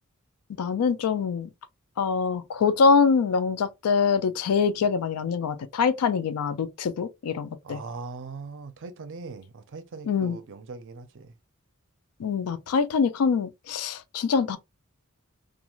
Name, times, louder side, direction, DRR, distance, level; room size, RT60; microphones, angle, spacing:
voice 1, 0.6-1.5 2.0-7.8 10.1-10.4 12.2-14.6, left 5 dB, 85° left, 0.4 m, -24 dB
voice 2, 7.6-11.3, right 4 dB, 60° right, 0.5 m, -40 dB
3.0 x 2.4 x 2.3 m
head